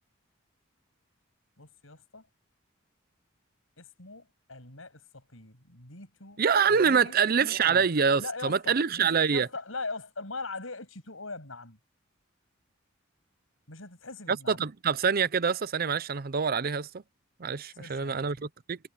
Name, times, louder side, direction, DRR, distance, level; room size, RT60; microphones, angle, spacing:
voice 1, 1.6-2.3 3.8-7.8 8.2-11.8 13.7-14.6 17.7-18.4, left 3 dB, 85° left, 7.9 m, -41 dB
voice 2, 6.4-9.5 14.3-17.0 17.4-18.8, right 6 dB, 50° right, 0.6 m, -25 dB
head